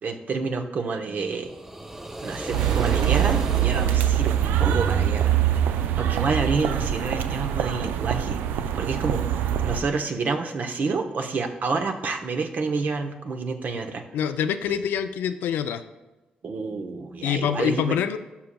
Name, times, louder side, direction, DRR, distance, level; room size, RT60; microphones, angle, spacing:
voice 1, 0.0-1.5 2.2-5.3 5.8-14.0 16.4-18.0, right 4 dB, 55° right, 5 dB, 0.8 m, -29 dB
sound 1, 1.2-5.3, right 1 dB, 10° right, 0.6 m, -36 dB
sound 2, 2.5-9.8, right 10 dB, 80° right, 0.3 m, -23 dB
voice 2, 14.1-15.8 17.2-18.2, left 8 dB, 80° left, 10 dB, 0.3 m, -25 dB
11.5 x 5.7 x 2.2 m, 1.1 s
supercardioid pair, 50°, 3 cm